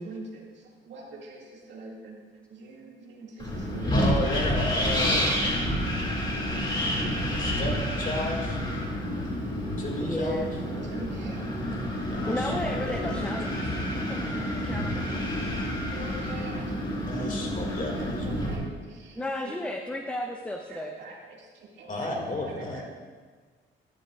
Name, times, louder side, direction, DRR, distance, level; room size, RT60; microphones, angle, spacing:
voice 1, 0.0-2.2 2.5-4.4 5.7-6.5 7.0-7.6 10.6-11.5 12.5-12.6 13.0-13.3 15.8-16.9 17.9-19.6 20.2-20.3 20.7-22.1 22.5-22.8, right 3 dB, 65° right, -2 dB, 2.0 m, -44 dB
Wind, 3.4-18.6, equal, 25° left, 2.2 m, -29 dB
voice 2, 3.9-5.3 7.4-8.6 9.8-10.4 12.0-13.3 17.1-18.5 21.9-22.8, left 1 dB, 45° left, 1 dB, 2.1 m, -33 dB
voice 3, 10.0-10.6 12.3-15.1 19.2-20.9, left 1 dB, 5° left, 4 dB, 0.5 m, -34 dB
12.0 x 10.5 x 2.4 m, 1.5 s
cardioid pair, 90°, 20 cm